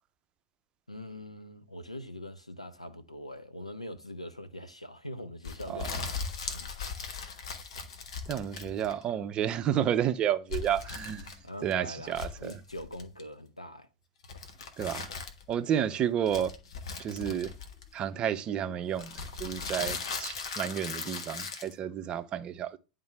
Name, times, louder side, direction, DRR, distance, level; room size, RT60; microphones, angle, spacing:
voice 1, 0.9-6.7 11.4-13.9, left 1 dB, 90° left, 0.7 m, -43 dB
sound 1, 5.4-9.1 10.5-11.7 12.0-13.2 14.2-15.5 16.3-18.1 18.9-21.7, left 5 dB, 60° left, 1.2 m, -38 dB
voice 2, 8.3-11.3 11.6-12.6 14.8-15.1 15.5-16.5 17.0-17.5 17.9-19.1 19.4-22.8, right 9 dB, 30° right, 0.6 m, -31 dB
10.0 x 3.7 x 3.3 m
figure-of-eight pair, 90°, 3 cm